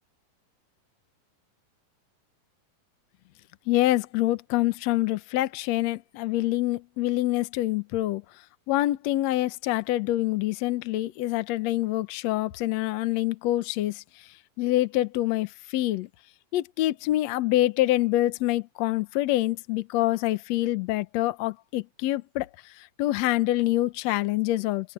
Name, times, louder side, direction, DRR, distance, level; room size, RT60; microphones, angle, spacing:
voice 1, 3.7-8.2 8.7-16.1 16.5-24.9, left 16 dB, 70° left, 1.7 m, -26 dB
open air
omnidirectional pair, 4.1 m